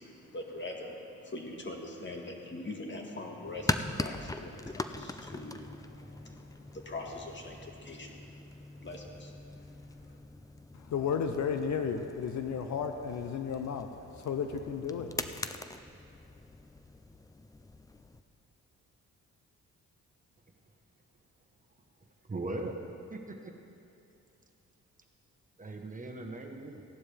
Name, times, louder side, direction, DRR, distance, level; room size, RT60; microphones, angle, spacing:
voice 1, 0.0-10.2, left 2 dB, 35° left, 1 dB, 1.8 m, -43 dB
sound 1, 3.4-18.2, left 2 dB, 10° left, 0.4 m, -41 dB
voice 2, 10.7-13.9 14.2-15.4, left 6 dB, 65° left, 7 dB, 0.7 m, -33 dB
voice 3, 22.2-22.8 23.1-23.5 25.6-26.8, right 2 dB, 25° right, 2 dB, 1.2 m, -39 dB
16.0 x 11.5 x 3.5 m, 2.7 s
cardioid pair, 85°, 31 cm